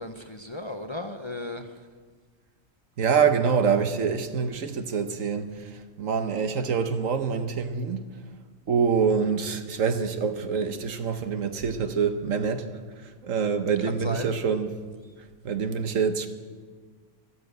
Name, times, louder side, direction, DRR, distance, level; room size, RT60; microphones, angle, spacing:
voice 1, 0.0-1.6 13.8-14.3, left 1 dB, 30° left, 0.6 m, -35 dB
voice 2, 3.0-5.5 6.0-8.1 8.7-12.6 13.2-14.7 15.4-16.3, right 6 dB, 85° right, 1.5 m, -25 dB
13.5 x 13.0 x 8.0 m
omnidirectional pair, 1.3 m